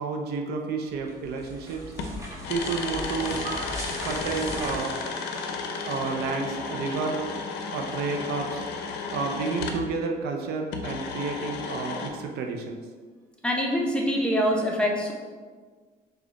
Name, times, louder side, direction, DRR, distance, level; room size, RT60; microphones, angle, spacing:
voice 1, 0.0-1.9 2.5-3.7 4.0-5.0 5.8-7.2 7.7-8.6 9.1-12.8, right 4 dB, 70° right, 3 dB, 0.6 m, -30 dB
sound 1, 0.9-5.9, equal, 15° right, 1.0 m, -38 dB
sound 2, 2.0-9.9 10.7-12.1, left 4 dB, 85° left, 0.5 m, -33 dB
voice 2, 13.4-15.1, equal, 5° left, -2 dB, 0.7 m, -24 dB
4.9 x 2.3 x 3.8 m, 1.5 s
cardioid pair, 110°, 17 cm